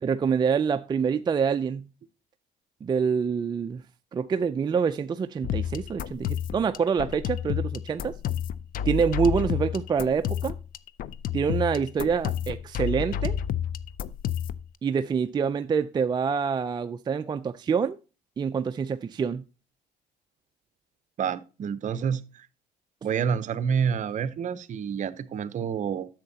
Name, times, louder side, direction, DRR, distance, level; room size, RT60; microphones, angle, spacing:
voice 1, 0.0-1.9 2.8-3.8 4.1-8.1 8.9-10.6 11.3-13.4 14.8-18.0 18.4-19.4, right 6 dB, 25° right, 0.4 m, -26 dB
sound 1, 5.4-14.7, left 9 dB, 55° left, 0.5 m, -30 dB
voice 2, 21.2-22.5 23.0-26.1, right 7 dB, 45° right, 0.7 m, -28 dB
10.5 x 7.2 x 2.8 m
cardioid pair, 110°, 17 cm